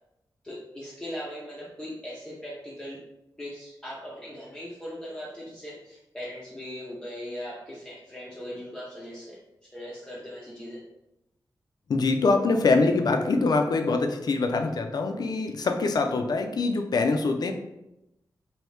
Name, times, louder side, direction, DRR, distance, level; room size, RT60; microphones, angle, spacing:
voice 1, 0.4-3.0 3.4-10.8, equal, 10° left, -7 dB, 0.6 m, -39 dB
voice 2, 11.9-17.5, left 3 dB, 60° left, 5 dB, 0.4 m, -24 dB
3.1 x 2.7 x 3.2 m, 0.89 s
wide cardioid pair, 110°, 8 cm